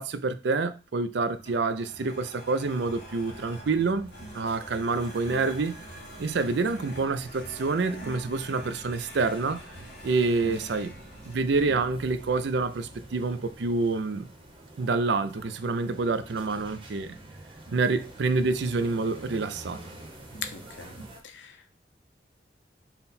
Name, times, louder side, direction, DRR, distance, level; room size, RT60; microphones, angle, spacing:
voice 1, 0.0-5.7 6.2-9.6 10.0-10.9 11.3-14.3 14.8-17.2 17.7-19.8, right 3 dB, 70° right, 0.4 m, -27 dB
sound 1, 1.2-21.0, right 1 dB, 60° left, 2.1 m, -47 dB
sound 2, 2.6-21.2, right 1 dB, 30° right, 0.9 m, -49 dB
voice 2, 20.5-20.9 21.2-21.8, left 3 dB, 80° left, 0.7 m, -48 dB
5.7 x 2.2 x 4.1 m
head